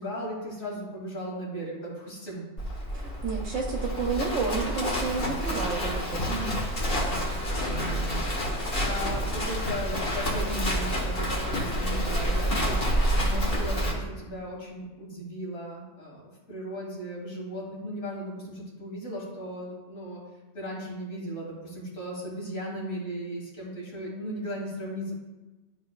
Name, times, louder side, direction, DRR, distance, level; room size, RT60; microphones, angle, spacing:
voice 1, 0.0-2.5 6.3-6.6 8.7-12.8 13.1-16.2 16.5-20.2 20.5-25.1, equal, 75° left, -4 dB, 2.3 m, -36 dB
Livestock farm animals working animals, 2.6-13.9, equal, 45° left, 1.3 m, -28 dB
voice 2, 2.9-6.3, right 4 dB, 70° right, 0 dB, 1.1 m, -31 dB
11.5 x 4.0 x 2.4 m, 1.2 s
omnidirectional pair, 1.4 m